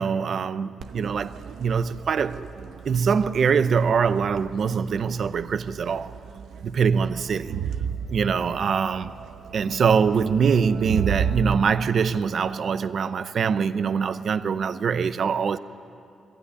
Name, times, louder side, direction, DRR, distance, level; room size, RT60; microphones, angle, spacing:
voice 1, 0.0-2.5 2.8-6.1 6.6-7.6 8.1-9.1 9.5-15.6, right 6 dB, 55° right, 0.7 m, -23 dB
Crowd, 0.8-11.5, right 7 dB, 85° right, 0.9 m, -34 dB
22.5 x 15.0 x 9.9 m
cardioid pair, 105°, 0 cm